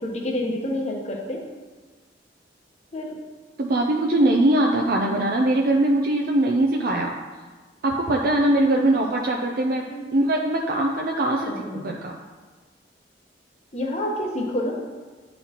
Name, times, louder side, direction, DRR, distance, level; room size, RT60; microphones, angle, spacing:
voice 1, 0.0-1.4 2.9-3.1 9.9-10.1 11.5-11.9 13.7-14.7, left 1 dB, 40° left, -1 dB, 1.0 m, -28 dB
voice 2, 3.6-7.2 7.8-9.8 10.1-12.1, right 1 dB, 55° right, 0 dB, 0.5 m, -21 dB
9.9 x 4.2 x 2.9 m, 1.4 s
head